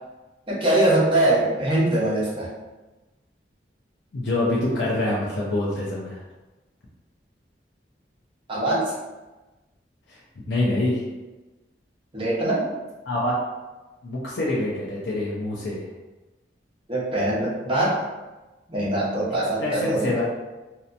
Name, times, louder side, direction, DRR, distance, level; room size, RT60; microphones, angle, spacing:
voice 1, 0.5-2.5 8.5-8.9 12.1-12.7 16.9-18.0 18.7-20.1, right 1 dB, 30° right, -7 dB, 0.8 m, -22 dB
voice 2, 4.1-6.2 10.1-10.2 10.5-11.0 13.1-13.3 14.0-15.9 19.6-20.2, left 1 dB, 75° left, -6 dB, 0.5 m, -25 dB
2.8 x 2.1 x 2.5 m, 1.1 s
head